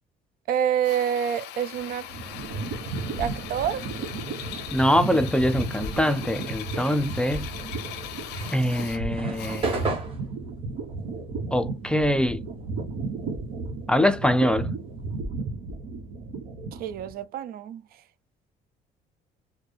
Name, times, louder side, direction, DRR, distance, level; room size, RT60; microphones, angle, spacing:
voice 1, 0.5-2.1 3.2-3.9 16.8-17.8, right 9 dB, 60° right, 0.4 m, -27 dB
Drill, 0.8-10.1, left 11 dB, 85° left, 0.6 m, -40 dB
sound 1, 1.7-17.2, right 3 dB, 80° right, 1.1 m, -34 dB
voice 2, 4.7-7.5 8.5-9.8 11.5-12.4 13.9-14.7, equal, 5° left, 0.4 m, -23 dB
sound 2, 8.2-12.9 13.2-15.2, right 2 dB, 30° right, 1.7 m, -34 dB
4.1 x 2.2 x 3.3 m
cardioid pair, 110°, 17 cm